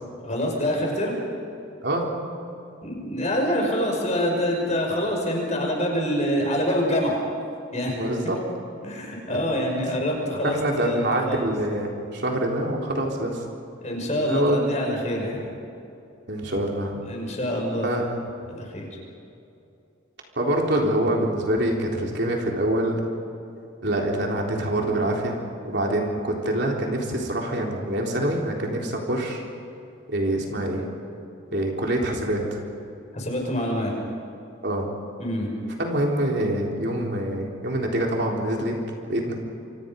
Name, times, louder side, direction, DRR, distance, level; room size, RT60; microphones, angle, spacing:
voice 1, 0.2-1.2 2.8-7.2 7.7-8.0 8.8-11.0 11.3-11.5 13.8-15.5 17.0-18.2 18.5-18.9 33.1-33.9 35.2-35.5, equal, 35° left, 0 dB, 6.0 m, -26 dB
voice 2, 7.9-8.4 9.3-9.4 10.4-13.4 14.2-14.6 16.3-17.0 17.8-18.2 20.4-23.0 23.8-25.4 25.6-29.4 30.1-30.9 31.5-32.6 34.6-34.9 35.8-38.8 39.1-39.3, right 1 dB, 55° right, -1 dB, 3.9 m, -25 dB
28.0 x 25.5 x 5.4 m, 2.6 s
head